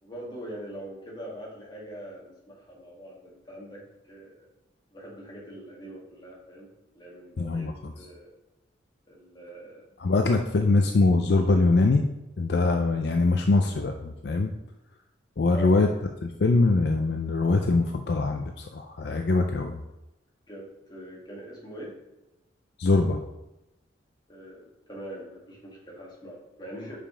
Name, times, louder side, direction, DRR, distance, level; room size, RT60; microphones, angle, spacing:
voice 1, 0.0-4.5 4.9-8.3 9.1-9.8 15.5-15.8 20.5-22.0 24.3-27.0, equal, 20° left, -3 dB, 1.8 m, -43 dB
voice 2, 7.4-7.9 10.0-12.1 12.4-14.5 15.4-15.9 16.2-19.8 22.8-23.2, left 3 dB, 55° left, 4 dB, 0.4 m, -23 dB
5.5 x 5.1 x 4.9 m, 0.95 s
head